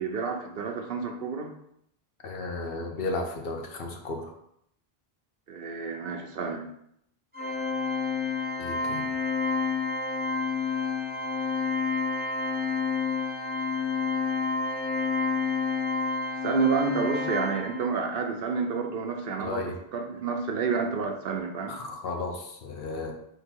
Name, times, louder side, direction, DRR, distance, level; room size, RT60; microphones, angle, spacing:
voice 1, 0.0-1.5 5.5-6.7 16.4-21.8, right 5 dB, 65° right, 3 dB, 0.8 m, -29 dB
voice 2, 2.2-4.3 8.6-9.1 19.4-19.7 21.7-23.1, left 3 dB, 65° left, 3 dB, 0.9 m, -34 dB
Organ, 7.3-18.1, left 4 dB, 10° right, 0.6 m, -29 dB
3.8 x 2.7 x 4.3 m, 0.74 s
omnidirectional pair, 1.0 m